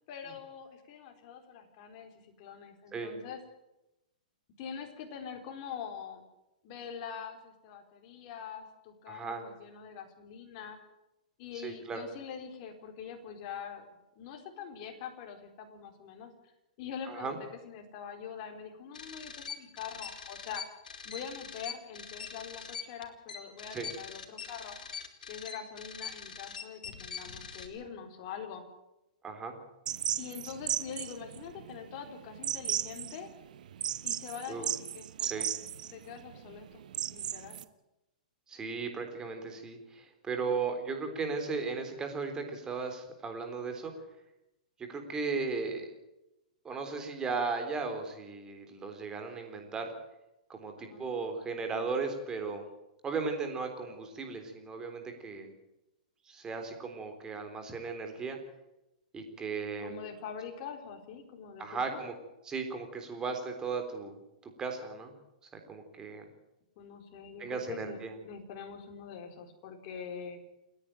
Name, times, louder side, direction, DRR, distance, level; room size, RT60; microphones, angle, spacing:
voice 1, 0.1-3.4 4.6-6.2 6.6-10.8 11.4-13.9 14.2-16.5 16.8-17.4 17.6-20.6 21.0-24.8 25.3-28.6 30.2-33.3 34.0-35.5 35.9-36.8 37.1-37.6 50.8-51.1 59.8-62.0 66.8-70.4, left 7 dB, 45° left, 4 dB, 4.1 m, -44 dB
voice 2, 9.1-9.4 11.6-12.0 17.1-17.4 23.7-23.9 29.2-29.5 34.5-34.7 35.2-35.5 38.5-43.9 44.8-45.9 46.6-49.9 50.5-52.6 53.0-55.5 56.3-58.4 59.1-60.0 61.6-62.1 62.5-65.1 65.7-66.2 67.4-68.1, right 4 dB, 15° right, 5 dB, 3.7 m, -36 dB
sound 1, 18.9-27.7, left 6 dB, 90° left, 2.9 m, -43 dB
sound 2, 29.9-37.6, right 10 dB, 70° right, 1.1 m, -36 dB
29.0 x 10.0 x 9.0 m, 0.92 s
hypercardioid pair, 145°, 4 cm